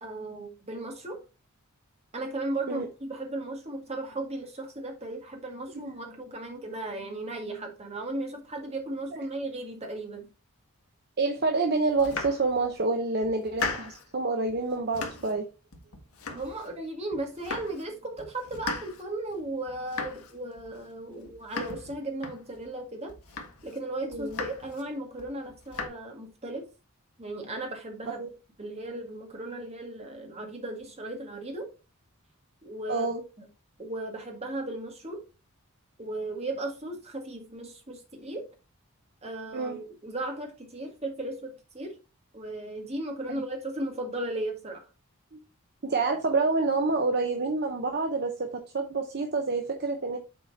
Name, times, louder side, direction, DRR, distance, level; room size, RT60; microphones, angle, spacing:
voice 1, 0.0-1.2 2.1-10.3 16.3-23.2 23.6-26.7 27.2-28.2 28.6-31.7 32.6-33.1 33.4-33.5 33.8-35.2 36.0-38.5 39.2-41.9 42.3-44.9, right 2 dB, 30° right, 1.9 m, -36 dB
voice 2, 11.2-15.4 24.1-24.4 28.1-28.3 32.9-33.2 39.5-39.8 43.3-43.4 45.3-45.4 45.8-50.2, right 3 dB, 45° right, 0.8 m, -28 dB
Domestic sounds home sounds, 11.9-12.8 13.2-14.1 14.5-15.4 15.7-16.8 17.1-17.9 18.2-22.7 23.1-23.8 24.1-24.9 25.2-25.9, left 4 dB, 80° left, 1.6 m, -38 dB
7.3 x 4.3 x 4.2 m
head